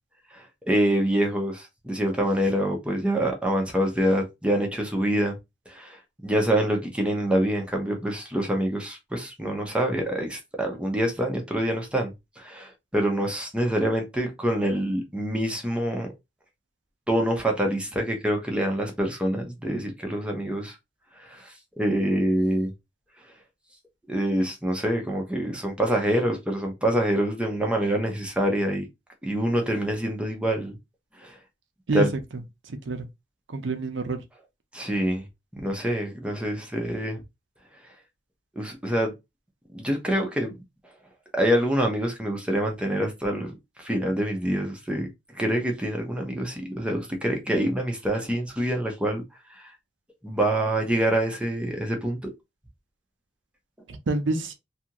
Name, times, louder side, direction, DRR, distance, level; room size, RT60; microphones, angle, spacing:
voice 1, 0.3-5.4 5.7-16.1 17.1-20.8 21.2-22.7 24.1-28.9 29.2-30.8 31.2-31.4 31.9-32.1 34.7-35.2 35.6-37.2 38.6-39.1 39.7-40.6 41.3-43.5 43.8-49.2 49.5-49.7 50.2-52.3, right 1 dB, 5° right, 0.6 m, -26 dB
voice 2, 32.7-33.1 33.5-34.2 53.9-54.5, right 3 dB, 80° right, 0.6 m, -27 dB
2.7 x 2.4 x 2.8 m
head